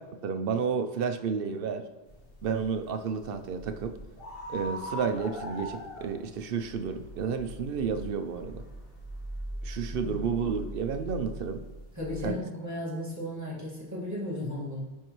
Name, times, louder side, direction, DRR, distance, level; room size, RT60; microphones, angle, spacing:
voice 1, 0.2-1.8 2.4-3.9 4.5-8.6 9.6-11.6 12.2-12.4, right 6 dB, 65° right, 7 dB, 0.7 m, -31 dB
sound 1, 2.1-12.3, equal, 60° left, 1.3 m, -41 dB
voice 2, 11.9-14.8, left 1 dB, 15° right, -6 dB, 1.9 m, -35 dB
10.5 x 4.4 x 3.0 m, 1.1 s
omnidirectional pair, 1.1 m